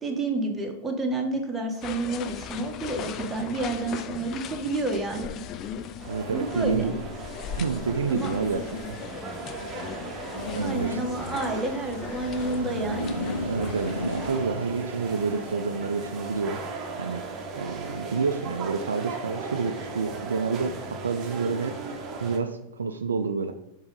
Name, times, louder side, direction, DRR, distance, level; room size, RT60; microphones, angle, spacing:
voice 1, 0.0-5.4 6.3-6.9 8.1-8.3 10.6-13.2, right 2 dB, 10° right, 1 dB, 1.4 m, -29 dB
sound 1, 1.8-14.4, left 8 dB, 35° left, 0.5 m, -39 dB
sound 2, 6.0-22.4, right 4 dB, 30° right, 1.1 m, -37 dB
voice 2, 6.1-7.0 7.6-8.6 8.9-9.0 10.5-11.0 13.4-16.6 17.0-20.7 21.0-23.5, right 5 dB, 70° right, 7 dB, 0.4 m, -29 dB
sound 3, 10.3-15.5, equal, 90° left, 0.5 m, -35 dB
7.1 x 3.8 x 5.1 m, 0.77 s
figure-of-eight pair, 90°, 0 cm